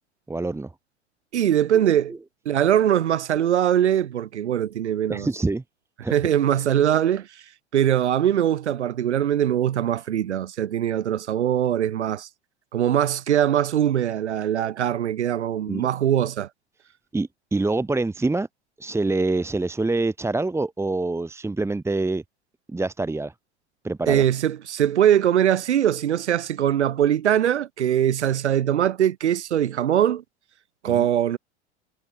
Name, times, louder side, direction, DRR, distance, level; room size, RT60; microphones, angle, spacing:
voice 1, 0.3-0.7 2.1-2.2 5.1-5.6 6.0-6.1 15.7-15.9 17.1-18.5 18.8-22.2 22.7-23.3 23.8-24.2 30.9-31.1, right 2 dB, 10° right, 2.0 m, -25 dB
voice 2, 1.3-2.1 2.5-5.3 6.1-7.3 7.7-12.3 12.7-16.5 24.1-30.2 30.8-31.4, right 10 dB, 75° right, 0.5 m, -22 dB
figure-of-eight pair, 85°, 34 cm